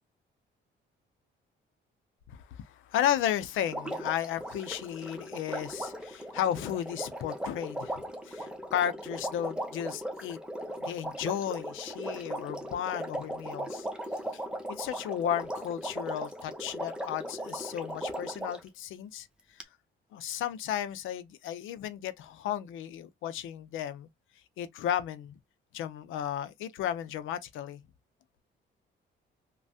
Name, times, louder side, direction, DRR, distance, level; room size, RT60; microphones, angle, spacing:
voice 1, 2.3-10.4 10.8-13.9 14.7-19.3 20.1-24.1 24.6-25.4 25.7-27.8, left 10 dB, 85° left, 0.6 m, -34 dB
Water, 3.7-18.7 19.6-19.7, right 1 dB, 5° right, 0.8 m, -38 dB
3.2 x 2.2 x 2.6 m
cardioid pair, 90°, 20 cm